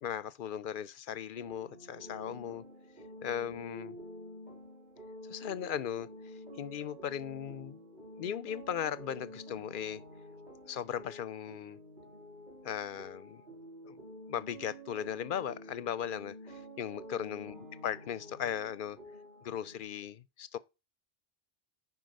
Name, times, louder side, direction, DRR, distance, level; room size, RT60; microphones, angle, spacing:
voice 1, 0.0-2.6 3.2-4.0 5.3-6.1 6.6-10.0 10.6-11.8 12.6-13.4 13.8-14.0 14.3-19.0 19.4-20.6, left 9 dB, 60° left, 0.7 m, -38 dB
sound 1, 1.3-19.8, equal, 45° right, 3.4 m, -49 dB
9.5 x 4.1 x 5.3 m
omnidirectional pair, 1.1 m